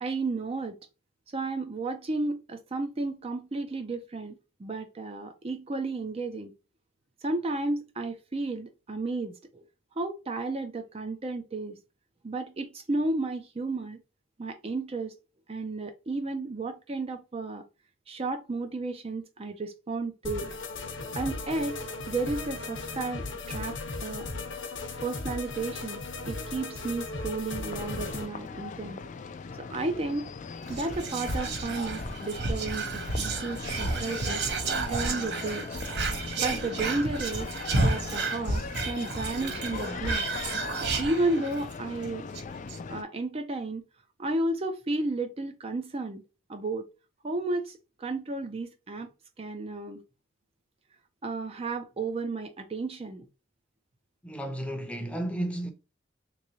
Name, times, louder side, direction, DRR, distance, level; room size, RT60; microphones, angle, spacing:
voice 1, 0.0-0.7 1.3-6.5 7.2-9.6 10.0-11.8 12.2-14.0 14.4-15.1 15.5-17.6 18.1-20.5 21.1-21.8 22.1-24.3 25.0-29.0 29.6-30.3 30.7-34.4 34.9-35.7 36.4-40.3 40.7-42.3 42.9-43.8 44.2-46.2 46.5-46.9 47.2-49.1 49.4-50.0 51.2-53.3, right 2 dB, 30° right, 0.4 m, -33 dB
sound 1, 20.2-28.3, left 3 dB, 70° left, 0.9 m, -36 dB
sound 2, 27.7-43.0, left 5 dB, 40° left, 0.3 m, -39 dB
Whispering, 30.7-41.7 42.0-42.1 42.3-42.8, right 3 dB, 60° right, 0.8 m, -31 dB
voice 2, 54.2-55.7, right 1 dB, 5° left, 0.6 m, -33 dB
3.6 x 3.1 x 2.7 m
head